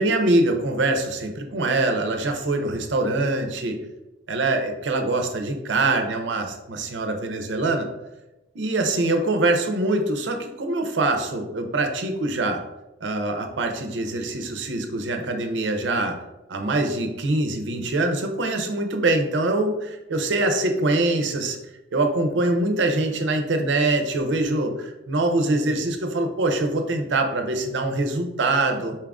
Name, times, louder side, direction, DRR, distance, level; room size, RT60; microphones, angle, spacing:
voice 1, 0.0-3.8 4.3-7.9 8.5-12.6 13.0-16.2 16.5-21.6 21.9-29.0, right 2 dB, 70° right, 5 dB, 0.6 m, -24 dB
4.4 x 2.4 x 3.5 m, 0.98 s
head